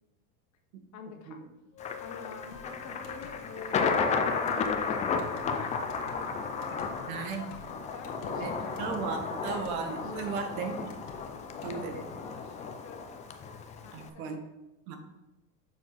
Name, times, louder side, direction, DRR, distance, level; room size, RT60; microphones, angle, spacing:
voice 1, 0.9-1.4 2.0-9.0 9.4-10.9 11.4-14.4 14.9-15.0, left 5 dB, 40° left, 4 dB, 1.3 m, -47 dB
Wind instrument woodwind instrument, 1.7-7.3, left 8 dB, 55° left, 1.2 m, -49 dB
Thunder, 1.8-14.1, left 5 dB, 15° left, 0.4 m, -33 dB
sound 1, 2.5-11.8, left 4 dB, 75° left, 1.6 m, -52 dB
voice 2, 7.1-7.4 8.4-8.5 8.8-10.9 11.6-12.2 13.9-14.4 14.9-15.0, right 5 dB, 65° right, 5 dB, 1.4 m, -35 dB
7.0 x 5.9 x 4.1 m, 1.0 s
supercardioid pair, 120°, 46 cm